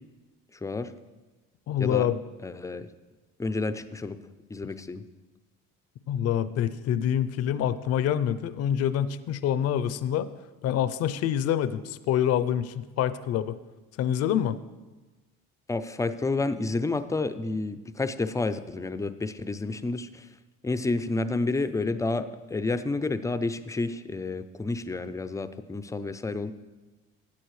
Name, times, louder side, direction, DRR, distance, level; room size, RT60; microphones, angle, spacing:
voice 1, 0.6-0.9 1.8-2.1 2.4-2.9 3.4-4.2 4.5-5.0 15.7-20.3 20.6-26.5, left 3 dB, 10° left, 12 dB, 0.4 m, -30 dB
voice 2, 1.7-2.2 6.1-10.3 10.6-13.6 14.0-14.6, left 10 dB, 55° left, 14 dB, 0.5 m, -26 dB
13.0 x 8.4 x 3.2 m, 1.2 s
supercardioid pair, 90°, 30 cm